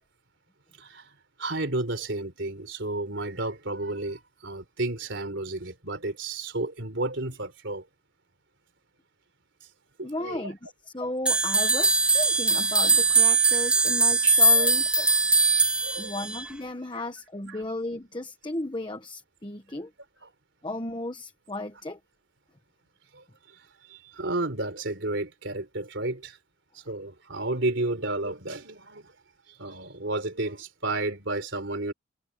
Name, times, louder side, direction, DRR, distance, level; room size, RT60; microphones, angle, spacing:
voice 1, 0.8-1.1 1.4-7.8 10.0-10.5 14.2-14.7 15.8-16.2 16.9-17.0 17.5-17.6 23.1-23.2 23.9-26.4 26.7-29.1 29.5-31.9, right 2 dB, 60° right, 3.7 m, -32 dB
voice 2, 10.0-15.1 16.0-19.9 20.6-22.0, left 2 dB, 25° left, 1.2 m, -35 dB
sound 1, 11.3-16.5, right 3 dB, 5° right, 1.1 m, -21 dB
head